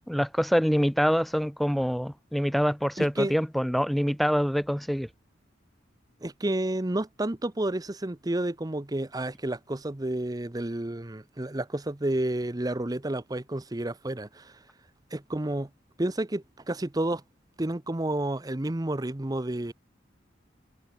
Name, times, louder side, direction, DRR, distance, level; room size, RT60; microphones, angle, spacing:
voice 1, 0.1-5.1, equal, ahead, 1.9 m, -25 dB
voice 2, 3.0-3.3 6.2-14.7 15.1-15.7 16.0-17.2 17.6-19.7, right 1 dB, 20° right, 0.8 m, -30 dB
head